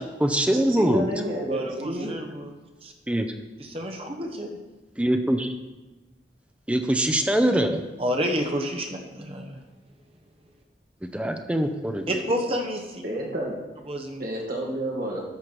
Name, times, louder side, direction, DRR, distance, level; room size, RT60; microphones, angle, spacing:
voice 1, 0.0-1.1 3.1-3.3 5.0-5.5 6.7-7.8 11.1-12.0, right 1 dB, 5° right, 6 dB, 0.6 m, -23 dB
voice 2, 0.7-2.1 13.0-13.5 14.2-15.2, right 1 dB, 55° right, -2 dB, 2.1 m, -30 dB
voice 3, 1.5-2.5 2.8-2.9 3.6-4.6 8.0-9.6 12.1-13.0 13.9-14.2, equal, 35° right, 2 dB, 0.9 m, -29 dB
12.5 x 4.5 x 6.2 m, 1.1 s
head